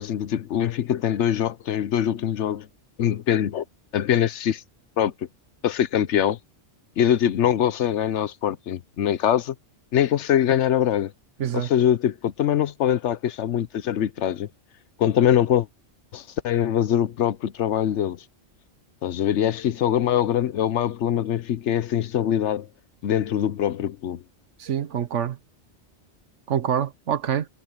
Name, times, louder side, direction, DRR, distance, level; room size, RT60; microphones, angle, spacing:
voice 1, 0.0-2.7 3.0-3.6 3.9-4.6 5.0-5.1 5.6-6.4 7.0-9.5 9.9-11.1 11.5-14.5 15.0-15.7 16.1-18.2 19.0-22.7 23.0-24.2, left 10 dB, 80° left, 1.1 m, -23 dB
voice 2, 24.6-25.4 26.5-27.5, right 9 dB, 90° right, 1.3 m, -26 dB
omnidirectional pair, 1.2 m